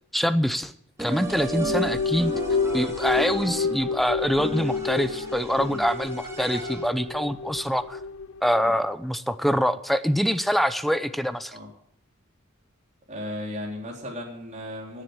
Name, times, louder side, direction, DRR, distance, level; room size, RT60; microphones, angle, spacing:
voice 1, 0.1-0.7 1.0-2.3 2.7-8.0 8.4-11.6, equal, ahead, 12 dB, 0.7 m, -25 dB
sound 1, 1.0-7.1, right 1 dB, 15° right, 2.6 m, -34 dB
sound 2, 1.1-8.7, left 5 dB, 80° left, 0.5 m, -30 dB
voice 2, 13.1-15.0, left 1 dB, 35° right, -1 dB, 4.0 m, -36 dB
16.5 x 7.6 x 8.0 m, 0.69 s
head